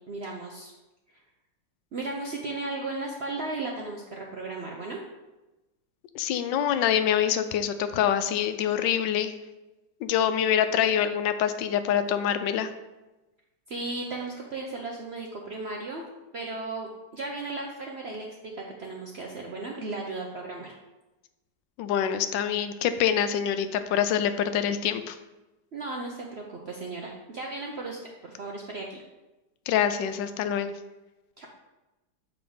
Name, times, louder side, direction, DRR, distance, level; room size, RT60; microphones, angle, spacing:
voice 1, 0.1-0.7 1.9-5.0 13.7-16.0 16.3-20.7 25.7-29.0 31.4-31.5, right 3 dB, 65° right, -1 dB, 0.6 m, -35 dB
voice 2, 6.1-9.3 10.0-12.7 21.8-25.2 29.7-30.7, left 9 dB, 85° left, 10 dB, 1.3 m, -25 dB
7.1 x 3.9 x 4.9 m, 1.1 s
omnidirectional pair, 1.9 m